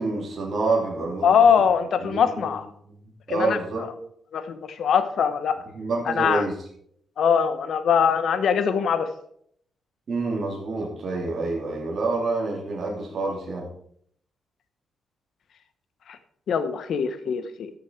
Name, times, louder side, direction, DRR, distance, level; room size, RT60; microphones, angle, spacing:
voice 1, 0.0-1.3 2.0-2.5 3.3-3.8 5.7-6.5 10.1-13.6, right 3 dB, 50° right, -2 dB, 3.1 m, -27 dB
voice 2, 1.2-2.7 3.3-3.6 4.3-5.6 6.1-6.5 7.2-9.1 16.1-16.2 16.5-17.7, left 7 dB, 65° left, 11 dB, 1.0 m, -22 dB
13.5 x 6.8 x 4.6 m, 0.66 s
cardioid pair, 140°, 0 cm